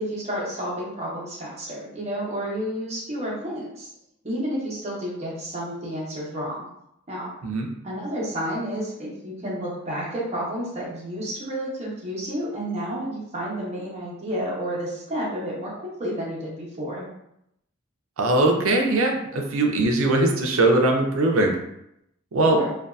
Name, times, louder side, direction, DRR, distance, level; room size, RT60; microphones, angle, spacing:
voice 1, 0.1-3.9 4.2-6.7 7.1-7.3 7.8-15.7 16.0-17.1 22.4-22.7, equal, 30° right, -6 dB, 0.9 m, -30 dB
voice 2, 18.2-21.6 22.3-22.6, right 2 dB, 75° right, 2 dB, 0.5 m, -20 dB
2.6 x 2.3 x 2.3 m, 0.79 s
head